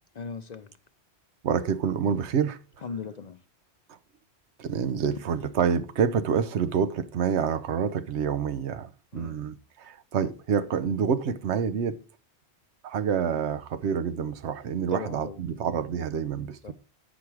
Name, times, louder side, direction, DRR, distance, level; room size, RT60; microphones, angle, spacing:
voice 1, 0.2-0.7 2.8-3.4 9.1-9.5 14.9-15.4 16.6-16.7, left 5 dB, 50° left, 0.6 m, -37 dB
voice 2, 1.4-2.6 4.6-12.0 12.8-16.7, right 7 dB, 85° right, 1.0 m, -27 dB
8.4 x 5.9 x 4.7 m
omnidirectional pair, 1.1 m